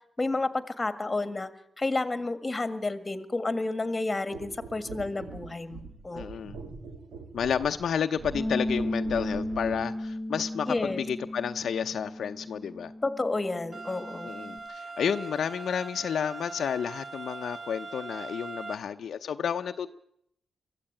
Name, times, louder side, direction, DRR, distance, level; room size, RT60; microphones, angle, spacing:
voice 1, 0.2-1.5 1.8-6.3 10.7-11.0 13.0-14.3, left 2 dB, 20° left, 12 dB, 1.7 m, -30 dB
sound 1, 4.3-9.9 10.7-10.9, right 4 dB, 75° right, 3.4 m, -43 dB
voice 2, 6.1-6.6 7.3-12.9 14.2-19.9, left 7 dB, 60° left, 7 dB, 0.8 m, -31 dB
Bass guitar, 8.3-14.6, left 1 dB, ahead, 3.5 m, -35 dB
sound 2, 13.7-18.7, right 3 dB, 30° right, 1.8 m, -41 dB
23.5 x 14.5 x 9.0 m, 0.72 s
wide cardioid pair, 135°, 0 cm